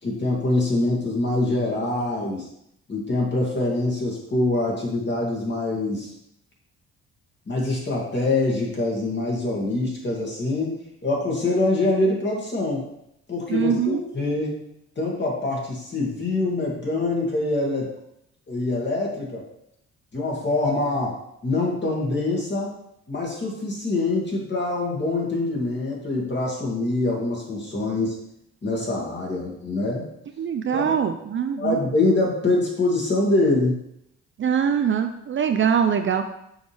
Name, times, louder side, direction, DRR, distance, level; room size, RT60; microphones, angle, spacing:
voice 1, 0.0-2.5 2.9-6.1 7.5-10.7 11.0-12.8 13.3-14.6 15.0-17.9 18.5-19.5 20.1-21.2 21.4-22.7 23.1-28.2 28.6-30.0 30.7-30.9 31.6-33.8, left 2 dB, 35° left, -3 dB, 2.2 m, -24 dB
voice 2, 13.5-14.0 30.4-31.8 34.4-36.2, right 7 dB, 40° right, 7 dB, 0.5 m, -23 dB
6.3 x 4.8 x 3.5 m, 0.78 s
cardioid pair, 90°, 30 cm